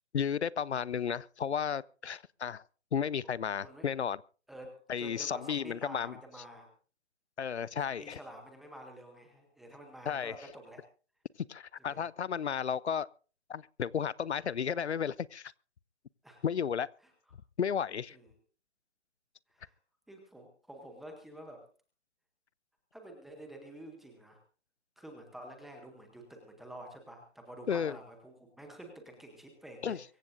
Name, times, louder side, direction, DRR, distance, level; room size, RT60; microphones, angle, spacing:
voice 1, 0.1-2.6 2.9-4.2 4.9-6.1 7.4-8.2 10.1-10.3 11.5-13.1 13.5-15.5 16.4-16.9 17.6-18.2 27.7-28.0 29.8-30.0, left 7 dB, 70° left, 0.7 m, -33 dB
voice 2, 4.5-6.7 7.8-10.8 11.8-12.0 16.2-16.4 18.1-18.2 19.5-19.7 20.1-21.6 22.9-24.4 25.0-30.0, right 1 dB, ahead, 0.7 m, -49 dB
24.0 x 14.5 x 2.6 m
hypercardioid pair, 160°, 35 cm